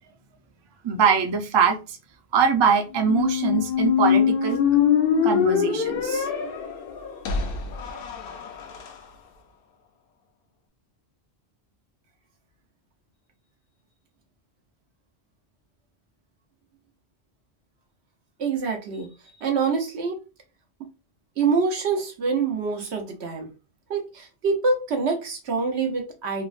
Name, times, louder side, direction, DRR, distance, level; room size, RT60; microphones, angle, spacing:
voice 1, 0.8-2.0 2.3-4.6 5.2-6.3, right 6 dB, 40° right, 5 dB, 0.4 m, -22 dB
Squeak, 3.0-8.9, left 7 dB, 65° left, 0.7 m, -23 dB
voice 2, 18.4-19.1 19.4-20.2 21.4-23.5 23.9-26.5, right 4 dB, 85° right, 3 dB, 1.1 m, -25 dB
3.5 x 2.0 x 2.4 m, 0.29 s
omnidirectional pair, 1.1 m